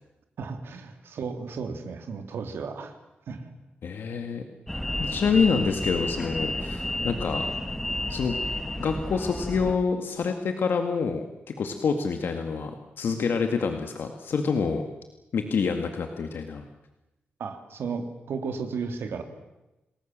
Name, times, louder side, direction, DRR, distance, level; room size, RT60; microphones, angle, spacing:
voice 1, 0.4-2.9 3.3-3.5 17.4-19.2, right 5 dB, 85° right, 7 dB, 3.0 m, -34 dB
voice 2, 3.8-4.4 5.0-7.4 8.1-8.4 8.8-14.8 15.3-16.6, left 5 dB, 65° left, 6 dB, 2.1 m, -27 dB
sound 1, 4.7-9.8, left 1 dB, 5° left, 1.5 m, -31 dB
28.5 x 20.0 x 7.6 m, 0.99 s
wide cardioid pair, 165°, 4 cm